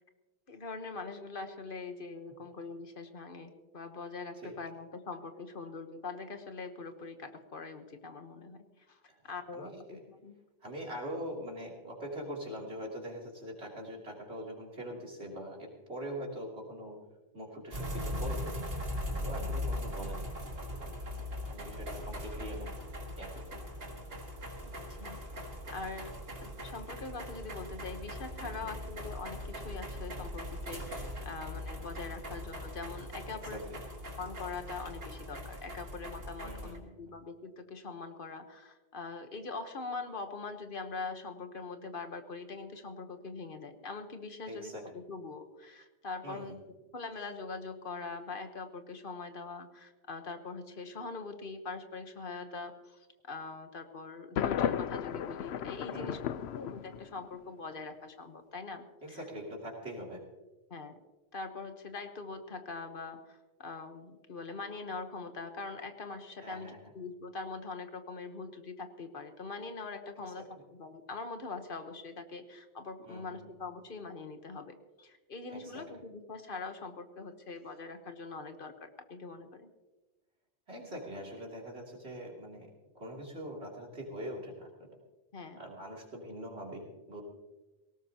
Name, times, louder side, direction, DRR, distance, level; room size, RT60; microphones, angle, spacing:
voice 1, 0.5-10.3 19.4-19.9 24.9-26.1 26.4-33.6 34.2-46.5 46.9-56.2 56.5-59.2 60.7-61.0 61.3-79.7 85.3-85.6, left 4 dB, 55° left, 7 dB, 1.3 m, -43 dB
voice 2, 9.5-10.0 10.6-17.0 17.3-18.5 19.1-20.3 20.7-20.9 21.5-22.7 23.2-23.6 28.4-28.7 33.3-33.8 36.4-37.1 44.5-44.9 46.2-46.6 55.9-56.2 59.0-60.2 66.4-66.8 70.4-70.5 73.0-73.4 75.5-75.9 80.7-82.7 82.9-84.9 85.6-87.2, equal, 85° right, -2 dB, 3.3 m, -43 dB
sound 1, 17.7-36.8, left 1 dB, 65° right, 2.2 m, -40 dB
Thunder, 54.4-57.3, left 9 dB, 85° left, 0.9 m, -34 dB
18.5 x 17.5 x 2.9 m, 1.1 s
omnidirectional pair, 1.1 m